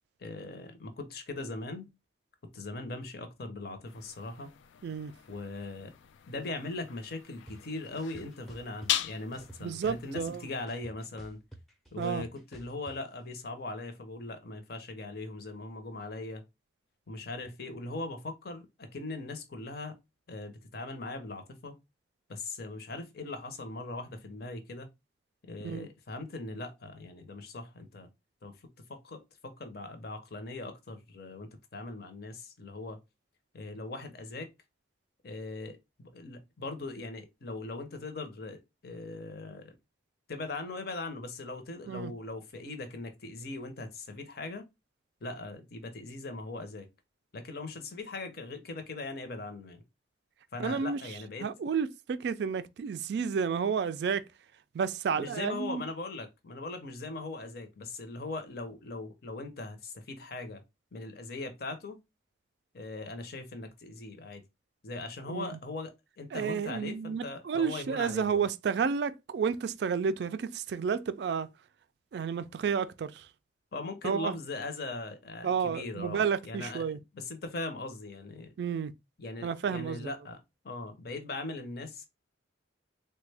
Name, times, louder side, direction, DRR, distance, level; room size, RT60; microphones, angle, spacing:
voice 1, 0.2-1.9 2.5-4.5 5.3-5.9 6.3-11.4 11.9-16.4 17.1-20.0 20.3-21.8 22.3-24.9 25.5-28.1 28.4-28.5 28.9-33.0 33.5-34.5 35.2-39.7 40.3-44.7 45.2-46.9 47.3-49.8 50.5-51.5 55.2-60.6 60.9-62.0 62.7-64.4 64.8-68.5 73.7-78.5 79.2-80.4 80.6-82.1, left 2 dB, 55° left, 0.7 m, -40 dB
sound 1, 3.9-10.7, left 11 dB, 80° left, 0.3 m, -40 dB
sound 2, 7.5-7.6 8.0-8.9 9.3-10.4 10.7-13.0, right 1 dB, ahead, 0.6 m, -50 dB
voice 2, 9.6-10.4 12.0-12.2 25.6-25.9 41.9-42.1 50.6-51.0 51.4-54.3 54.7-55.8 65.3-65.5 66.3-71.5 72.1-73.2 74.0-74.3 75.4-77.0 78.6-78.9 79.4-80.1, right 6 dB, 60° right, 0.3 m, -31 dB
3.4 x 2.1 x 3.3 m
head